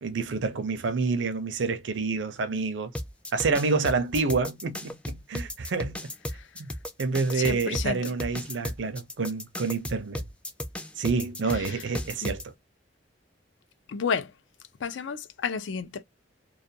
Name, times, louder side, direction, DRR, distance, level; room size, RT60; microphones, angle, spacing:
voice 1, 0.0-2.9 3.3-6.0 6.6-6.7 7.0-10.2 11.0-12.5, right 4 dB, 75° right, 0.5 m, -28 dB
sound 1, 2.9-12.4, left 1 dB, 5° left, 0.3 m, -35 dB
voice 2, 7.3-8.1 11.5-11.8 12.2-12.3 13.9-14.3 14.8-16.0, left 6 dB, 75° left, 0.4 m, -32 dB
2.3 x 2.2 x 2.6 m
head